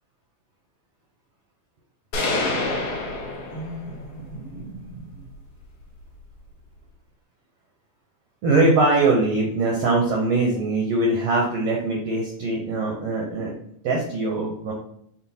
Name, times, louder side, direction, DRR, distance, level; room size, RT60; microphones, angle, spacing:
sound 1, 2.1-4.1, left 2 dB, 75° left, 1.2 m, -27 dB
voice 1, 3.5-5.3 8.4-13.5 13.8-14.7, right 2 dB, 75° right, -2 dB, 1.5 m, -23 dB
5.6 x 2.3 x 4.0 m, 0.69 s
omnidirectional pair, 3.8 m